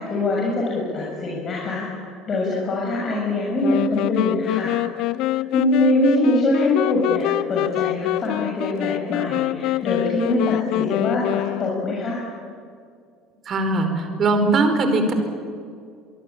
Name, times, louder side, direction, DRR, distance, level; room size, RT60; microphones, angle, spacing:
voice 1, 0.0-1.9 2.3-4.8 5.3-12.2, left 2 dB, 35° left, -4 dB, 7.1 m, -23 dB
sound 1, 3.6-12.1, left 17 dB, 55° left, 0.7 m, -25 dB
voice 2, 13.5-15.1, right 2 dB, 40° right, 7 dB, 4.9 m, -20 dB
25.0 x 23.0 x 8.8 m, 2.3 s
figure-of-eight pair, 60°, 0 cm